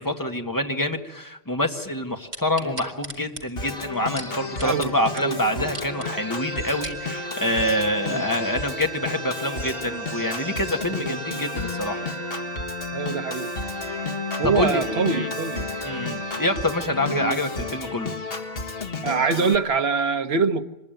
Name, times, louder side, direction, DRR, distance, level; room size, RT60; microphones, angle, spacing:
voice 1, 0.0-12.0 14.4-15.3 15.8-18.1, left 1 dB, 20° left, 3 dB, 1.8 m, -26 dB
sound 1, 2.3-4.9 5.2-5.3 5.6-6.1 6.6-7.0 7.6-7.7, right 2 dB, 45° right, 2.6 m, -37 dB
Organ, 3.6-19.6, left 3 dB, 65° left, 1.8 m, -32 dB
voice 2, 4.6-5.7 8.1-8.2 10.9-11.2 12.9-13.5 14.4-15.7 17.1-17.5 19.0-20.6, right 5 dB, 80° right, 7 dB, 1.4 m, -25 dB
sound 2, 5.9-18.1, right 3 dB, 60° right, 1.5 m, -37 dB
25.5 x 21.0 x 9.2 m, 1.0 s
omnidirectional pair, 1.0 m